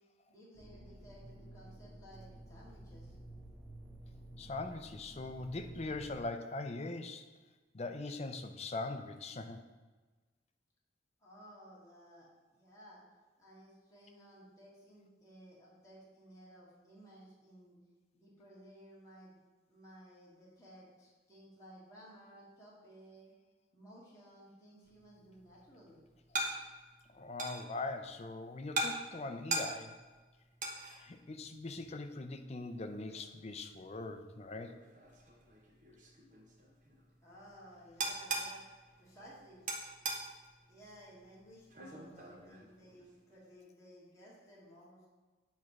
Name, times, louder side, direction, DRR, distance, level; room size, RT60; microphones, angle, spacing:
voice 1, 0.3-3.2 11.2-13.0 13.4-17.8 18.1-19.4 19.7-23.3 23.7-26.1 37.2-38.6 39.0-39.6 40.7-45.0, equal, 15° left, -7 dB, 1.7 m, -57 dB
sound 1, 0.5-6.3, right 1 dB, 10° right, 0.9 m, -52 dB
voice 2, 4.4-7.3 7.7-9.6 27.1-30.0 30.8-34.8, left 2 dB, 35° left, 7 dB, 0.5 m, -41 dB
sound 2, 24.8-43.4, right 2 dB, 45° right, 1.0 m, -43 dB
8.3 x 3.2 x 5.9 m, 1.3 s
head